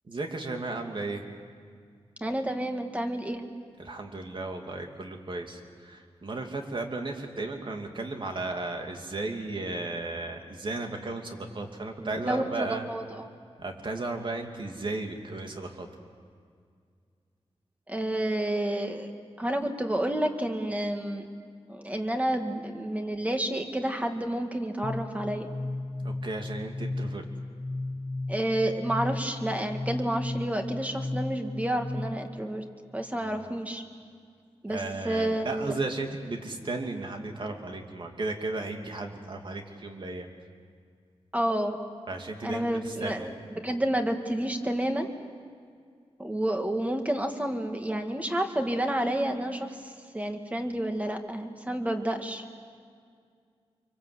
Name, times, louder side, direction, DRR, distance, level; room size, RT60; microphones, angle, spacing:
voice 1, 0.1-1.2 3.8-12.8 13.6-15.9 26.0-27.2 33.3-33.5 34.7-40.3 42.1-43.3, right 2 dB, 50° right, 3 dB, 2.6 m, -35 dB
voice 2, 2.2-3.4 12.0-13.3 17.9-19.1 19.4-21.3 21.7-25.5 28.3-32.6 32.9-33.8 34.6-35.7 41.3-41.8 42.4-45.1 46.2-52.4, right 1 dB, 15° right, 4 dB, 2.1 m, -30 dB
sound 1, 24.8-32.4, left 2 dB, 30° left, 1.4 m, -35 dB
26.5 x 24.5 x 8.0 m, 2.1 s
wide cardioid pair, 120°, 11 cm